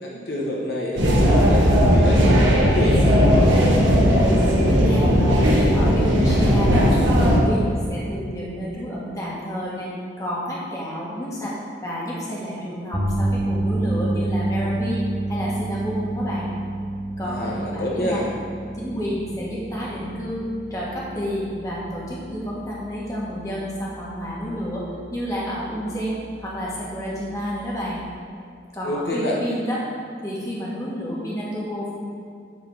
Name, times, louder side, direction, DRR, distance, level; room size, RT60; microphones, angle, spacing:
voice 1, 0.0-3.2 17.2-18.2 28.8-29.4, left 1 dB, 55° left, -4 dB, 1.0 m, -27 dB
sound 1, 1.0-7.4, equal, 90° right, 1.6 m, -17 dB
voice 2, 4.0-5.1 5.4-6.9 7.2-11.5 11.8-16.5 17.2-18.2 18.7-24.8 25.1-28.1 28.7-29.8 30.2-32.0, equal, 20° left, -7 dB, 1.7 m, -30 dB
sound 2, 12.9-25.2 25.5-25.8 28.0-28.1, right 1 dB, 30° right, 1.2 m, -29 dB
8.1 x 4.0 x 7.0 m, 2.3 s
head